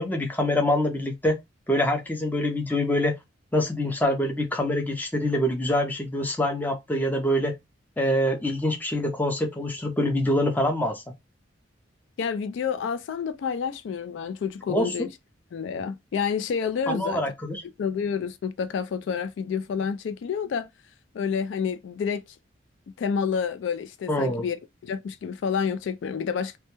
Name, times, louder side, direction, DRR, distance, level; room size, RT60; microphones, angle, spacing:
voice 1, 0.0-1.4 1.7-3.1 3.5-7.5 8.0-11.0 14.7-15.1 16.9-17.6 24.1-24.4, left 1 dB, 10° left, 0.5 m, -25 dB
voice 2, 12.2-15.1 15.5-17.2 17.8-20.7 21.1-22.2 23.0-24.6 24.8-26.6, left 6 dB, 75° left, 0.3 m, -29 dB
2.2 x 2.2 x 2.9 m
head